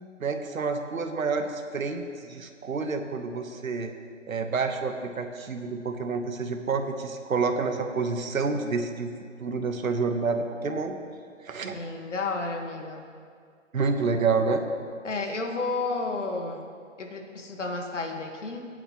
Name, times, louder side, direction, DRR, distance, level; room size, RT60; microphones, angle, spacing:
voice 1, 0.2-3.9 4.3-9.1 9.4-10.9 11.4-11.8 13.7-14.6, right 4 dB, 90° right, 5 dB, 1.3 m, -28 dB
voice 2, 11.7-13.1 15.0-16.6 17.0-18.7, left 3 dB, 65° left, 3 dB, 1.7 m, -32 dB
21.5 x 9.1 x 3.1 m, 2.2 s
hypercardioid pair, 180°, 40 cm